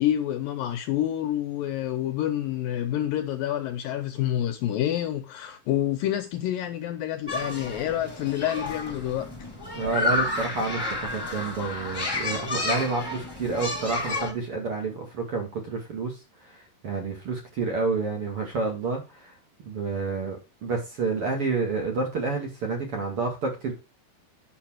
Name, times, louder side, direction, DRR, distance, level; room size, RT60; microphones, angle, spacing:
voice 1, 0.0-9.3, left 12 dB, 75° left, 2.3 m, -28 dB
sound 1, 7.3-14.3, left 2 dB, 10° left, 1.4 m, -31 dB
voice 2, 9.8-16.1 16.4-16.5 16.8-19.3 19.6-23.7, right 4 dB, 40° right, 2.4 m, -29 dB
9.5 x 6.8 x 4.5 m
omnidirectional pair, 4.7 m